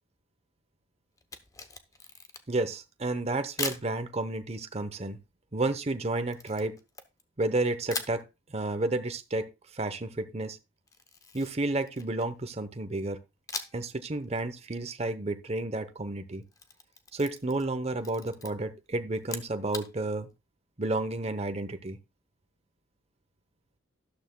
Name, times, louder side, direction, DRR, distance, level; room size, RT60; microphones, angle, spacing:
Camera, 1.2-2.7 3.6-3.9 6.3-7.5 7.9-8.2 10.9-12.4 13.5-13.9 14.2-14.3 16.3-17.7 18.0-18.5 19.2-19.9, left 4 dB, 15° left, 0.7 m, -39 dB
voice 1, 2.5-5.2 5.5-6.8 7.4-10.6 11.3-13.2 13.7-16.4 17.1-20.3 20.8-22.0, right 2 dB, 30° right, 0.8 m, -31 dB
12.5 x 11.5 x 2.2 m
head